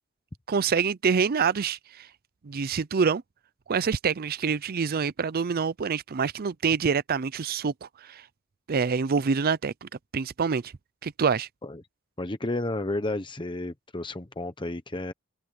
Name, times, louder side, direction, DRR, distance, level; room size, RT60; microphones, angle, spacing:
voice 1, 0.5-2.1 2.4-3.2 3.7-8.2 8.7-10.7 11.0-11.5, right 5 dB, 45° right, 0.5 m, -26 dB
voice 2, 12.2-15.1, left 2 dB, 20° left, 1.0 m, -32 dB
head